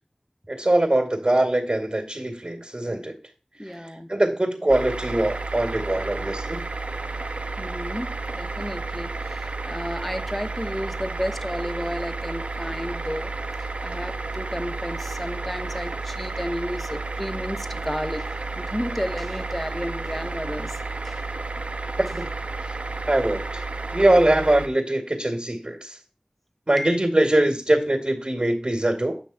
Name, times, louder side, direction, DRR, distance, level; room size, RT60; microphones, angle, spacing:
voice 1, 0.5-3.1 4.1-6.7 22.1-22.3 23.1-23.6 23.9-26.0 26.7-29.2, right 1 dB, 45° right, 2.3 m, -22 dB
voice 2, 3.6-4.2 7.6-13.3 13.8-20.8 21.0-21.2 23.1-23.2 26.7-27.0, equal, 5° left, 1.0 m, -32 dB
sound 1, 4.7-24.7, right 3 dB, 85° right, 1.0 m, -32 dB
9.5 x 5.9 x 4.2 m
wide cardioid pair, 40°, 2 cm